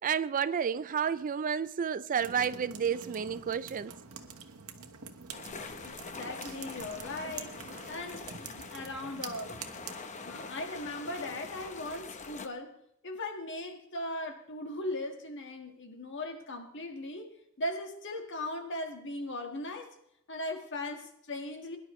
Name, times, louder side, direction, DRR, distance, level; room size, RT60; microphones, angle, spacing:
voice 1, 0.0-3.9, right 7 dB, 40° right, 0.4 m, -31 dB
Tourists and dripping water inside a cave, 2.2-10.0, right 6 dB, 80° right, 1.1 m, -46 dB
sound 1, 5.3-12.5, left 4 dB, 35° left, 0.8 m, -44 dB
voice 2, 5.8-7.6 7.9-9.6 10.2-12.7 13.0-17.3 17.6-19.9 20.3-21.8, left 1 dB, 55° left, 1.6 m, -38 dB
22.0 x 11.0 x 3.1 m
head